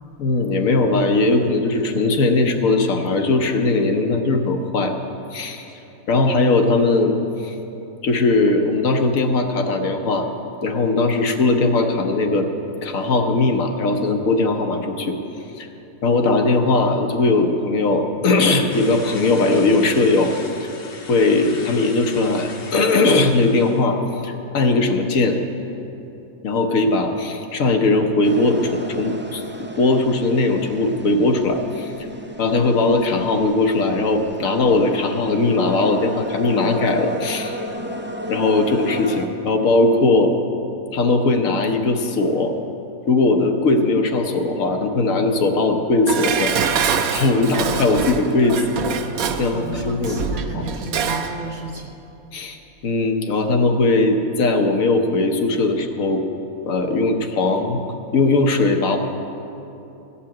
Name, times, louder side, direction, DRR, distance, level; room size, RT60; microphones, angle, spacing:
voice 1, 0.2-4.9 5.3-5.7 6.1-7.5 8.0-10.3 10.6-12.5 12.8-15.2 15.6-15.7 16.0-20.3 20.6-20.7 21.1-25.4 26.4-31.9 32.4-37.6 38.3-40.3 40.9-42.5 43.1-46.5 47.1-48.6 49.4-50.7 52.3-52.6 52.8-56.2 56.6-57.8 58.1-59.0, left 3 dB, 75° left, 4 dB, 1.3 m, -19 dB
sound 1, 18.7-23.9, left 4 dB, 50° left, 1.0 m, -39 dB
sound 2, 28.2-39.3, equal, 15° right, 0.3 m, -34 dB
Dishes pots and pans, 46.1-51.4 51.7-51.8, right 6 dB, 85° right, 1.2 m, -25 dB
voice 2, 49.4-51.9, right 3 dB, 40° right, 1 dB, 0.9 m, -34 dB
14.5 x 5.7 x 8.6 m, 2.9 s
omnidirectional pair, 1.4 m